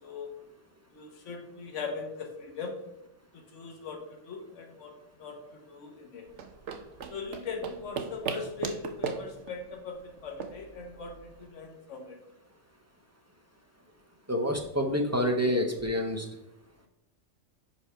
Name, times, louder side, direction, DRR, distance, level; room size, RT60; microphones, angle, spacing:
voice 1, 0.9-2.8 3.3-6.3 7.1-12.2, left 4 dB, 80° left, 3 dB, 1.3 m, -40 dB
sound 1, 6.3-11.5, right 6 dB, 75° right, 1.0 m, -38 dB
voice 2, 14.3-16.3, equal, 20° right, 2 dB, 0.6 m, -27 dB
5.4 x 4.8 x 5.6 m, 0.88 s
omnidirectional pair, 1.2 m